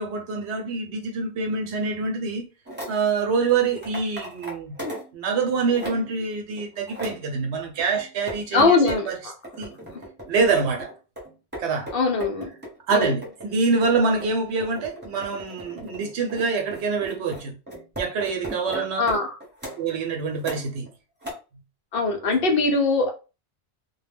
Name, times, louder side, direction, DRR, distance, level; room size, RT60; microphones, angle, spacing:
voice 1, 0.0-2.5 2.9-4.7 5.1-9.2 9.6-9.7 10.3-10.9 11.6-11.9 12.9-17.6 18.0-19.1 19.8-20.9 22.2-22.3, right 4 dB, 80° right, 0.9 m, -25 dB
sound 1, 2.7-2.9 3.4-5.1 5.5-6.2 6.6-7.2 7.8-9.1 9.4-10.3 10.8-19.8 20.4-20.9 21.2-21.3, right 1 dB, 10° right, 0.9 m, -37 dB
voice 2, 8.5-9.3 11.9-12.5 12.9-13.1 19.0-19.4 21.9-23.1, left 3 dB, 65° left, 0.7 m, -21 dB
2.2 x 2.1 x 3.3 m
omnidirectional pair, 1.1 m